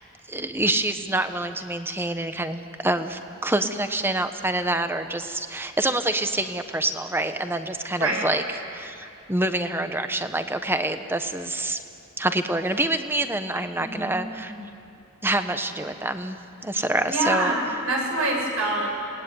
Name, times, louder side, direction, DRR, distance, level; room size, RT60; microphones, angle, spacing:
voice 1, 0.3-8.4 8.7-11.8 12.2-14.5 15.2-16.4 16.6-17.6, right 1 dB, 10° right, 8 dB, 1.1 m, -26 dB
voice 2, 8.0-8.3 13.7-14.6 17.1-18.9, right 2 dB, 85° right, 0 dB, 6.3 m, -26 dB
27.5 x 19.5 x 9.6 m, 2.9 s
head